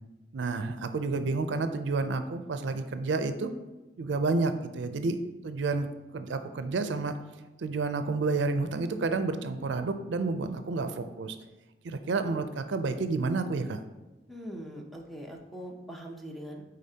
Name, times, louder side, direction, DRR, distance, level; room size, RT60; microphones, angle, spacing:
voice 1, 0.3-3.5 4.0-5.2 5.4-5.9 6.1-7.1 7.6-11.4 11.8-13.8, right 3 dB, 75° right, 9 dB, 0.4 m, -30 dB
voice 2, 14.3-16.6, equal, ahead, 0 dB, 0.7 m, -42 dB
8.3 x 4.0 x 2.8 m, 1.1 s
head